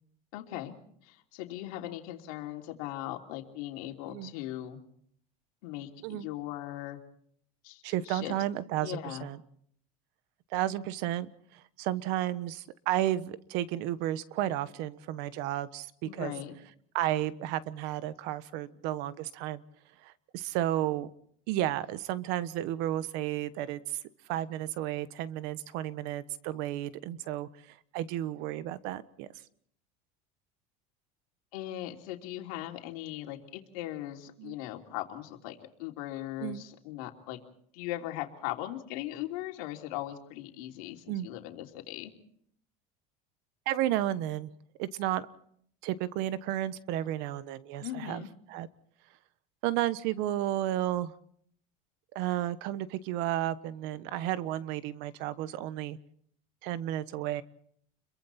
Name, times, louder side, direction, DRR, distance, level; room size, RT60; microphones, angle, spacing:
voice 1, 0.3-0.7 1.0-4.8 5.6-7.0 7.6-8.3 8.8-9.3 16.0-16.5 31.5-37.4 37.7-42.1 47.8-48.3, left 14 dB, 85° left, 3 dB, 3.1 m, -39 dB
voice 2, 7.8-9.4 10.5-16.3 16.9-19.6 20.0-21.1 21.5-24.0 24.3-27.5 27.9-29.3 34.4-34.5 36.4-36.6 41.1-41.3 43.7-44.5 44.8-45.3 45.8-48.2 48.5-48.7 49.6-51.1 52.1-56.0 56.6-57.4, right 13 dB, 70° right, 14 dB, 1.3 m, -32 dB
29.5 x 23.0 x 4.3 m, 0.66 s
supercardioid pair, 130°, 18 cm